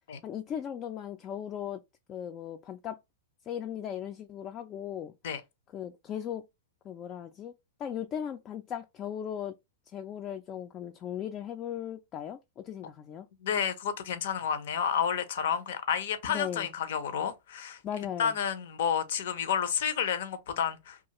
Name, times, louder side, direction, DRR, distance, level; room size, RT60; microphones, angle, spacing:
voice 1, 0.2-1.8 2.1-3.0 3.5-5.1 5.7-6.5 6.8-7.5 7.8-9.6 9.9-13.3 16.3-16.7 17.8-18.3, left 9 dB, 30° left, 0.3 m, -37 dB
voice 2, 13.4-17.8 18.2-21.1, left 8 dB, 70° left, 0.6 m, -30 dB
2.4 x 2.3 x 2.9 m
hypercardioid pair, 125°, 0 cm